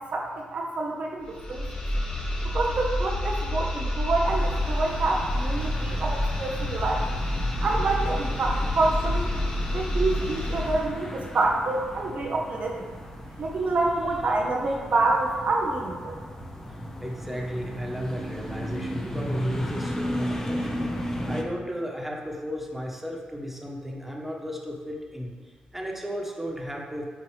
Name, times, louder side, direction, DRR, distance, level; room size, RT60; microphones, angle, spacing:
voice 1, 0.0-1.7 2.5-7.0 7.6-9.3 9.7-12.8 13.4-16.2, right 3 dB, 60° right, -1 dB, 0.9 m, -27 dB
sound 1, 1.2-10.9, left 1 dB, 50° left, 1.9 m, -28 dB
sound 2, 4.2-21.4, equal, 20° left, 1.0 m, -35 dB
voice 2, 17.0-20.8 21.3-27.0, equal, 10° right, -1 dB, 1.4 m, -35 dB
9.0 x 4.4 x 3.3 m, 1.5 s
supercardioid pair, 60°, 3 cm